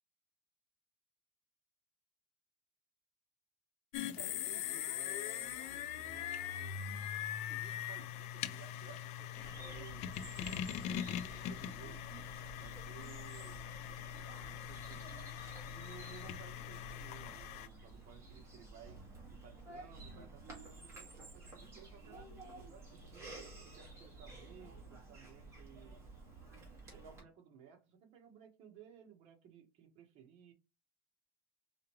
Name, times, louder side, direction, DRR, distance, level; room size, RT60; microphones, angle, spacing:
sound 1, 3.9-17.7, left 10 dB, 50° left, 0.5 m, -42 dB
voice 1, 4.2-6.8 7.5-12.1 12.6-15.2 15.6-19.0 19.3-23.4 23.6-26.0 26.5-26.6 26.9-30.5, right 8 dB, 45° right, 1.3 m, -58 dB
Bird vocalization bird call bird song, 9.4-27.2, right 2 dB, 20° right, 1.8 m, -53 dB
4.8 x 3.5 x 3.1 m
cardioid pair, 170°, 15 cm